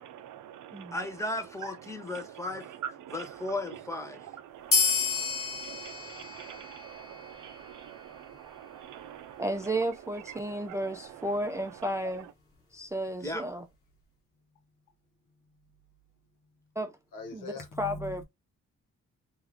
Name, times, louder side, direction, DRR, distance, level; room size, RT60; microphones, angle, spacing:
voice 1, 0.0-1.0 2.0-2.4 2.8-3.5 3.7-3.8 4.1-9.4 10.7-10.8, right 10 dB, 70° right, 0.5 m, -45 dB
voice 2, 0.9-2.7 3.1-4.2 13.2-13.4, left 2 dB, 10° left, 1.2 m, -35 dB
sound 1, 4.7-7.7, left 4 dB, 45° left, 1.3 m, -30 dB
voice 3, 9.4-12.3 12.7-13.7 16.8-17.0 17.3-18.2, right 1 dB, 10° right, 0.4 m, -33 dB
voice 4, 17.1-18.2, left 2 dB, 75° left, 1.0 m, -41 dB
2.5 x 2.3 x 3.4 m
supercardioid pair, 55°, 32 cm